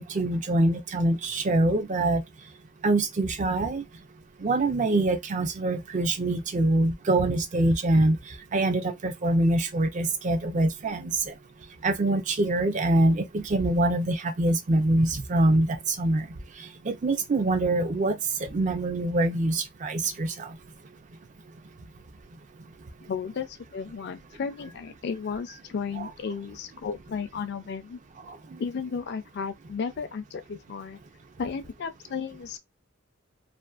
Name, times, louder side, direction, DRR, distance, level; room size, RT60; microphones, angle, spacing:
voice 1, 0.0-2.2 2.8-3.8 4.4-8.2 8.5-11.3 11.8-16.3 16.8-20.5, right 2 dB, 35° right, 0.4 m, -24 dB
voice 2, 23.0-28.0 28.6-31.0 31.4-32.6, left 6 dB, 55° left, 0.4 m, -34 dB
2.5 x 2.4 x 2.3 m
head